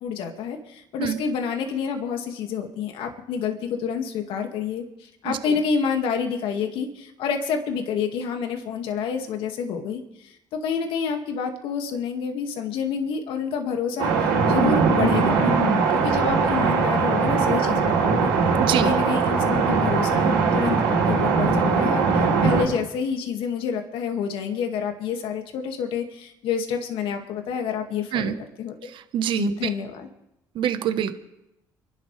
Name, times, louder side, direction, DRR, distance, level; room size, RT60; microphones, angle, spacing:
voice 1, 0.0-15.5 15.9-18.3 18.8-28.3 28.6-28.9 29.3-30.1, left 6 dB, 75° left, 4 dB, 2.1 m, -28 dB
voice 2, 5.2-5.6 18.6-18.9 28.1-28.3 28.8-29.7 30.5-31.1, right 9 dB, 65° right, 10 dB, 1.2 m, -26 dB
sound 1, 14.0-22.6, right 4 dB, 85° right, 3.5 m, -20 dB
29.5 x 12.0 x 3.4 m, 0.86 s
supercardioid pair, 70°, 9 cm